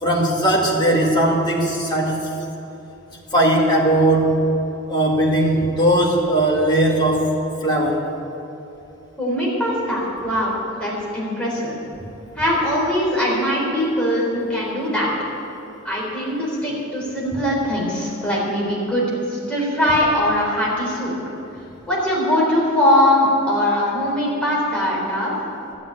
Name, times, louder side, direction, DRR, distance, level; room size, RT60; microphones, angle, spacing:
voice 1, 0.0-2.3 3.3-4.4 4.9-7.3 7.6-8.0, right 1 dB, 20° left, -3 dB, 2.2 m, -18 dB
voice 2, 9.2-11.7 12.3-15.1 15.8-21.1 21.9-25.3, left 1 dB, 5° left, -6 dB, 3.9 m, -21 dB
12.5 x 7.5 x 9.9 m, 2.9 s
head